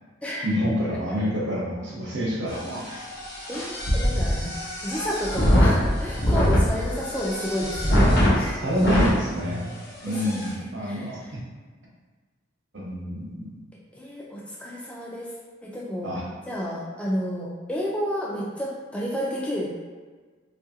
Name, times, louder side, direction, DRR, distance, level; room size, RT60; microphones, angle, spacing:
voice 1, 0.4-3.1 8.4-9.7 10.0-11.4 12.7-13.6 16.0-16.2, equal, 70° right, -5 dB, 0.8 m, -28 dB
sound 1, 2.5-9.2 9.7-9.8 10.1-10.5, equal, 55° left, 0.7 m, -23 dB
voice 2, 3.5-4.5 4.8-8.6 10.0-11.1 13.9-15.3 15.6-16.1 16.5-19.8, equal, 5° left, -5 dB, 0.4 m, -31 dB
2.8 x 2.5 x 2.7 m, 1.4 s
head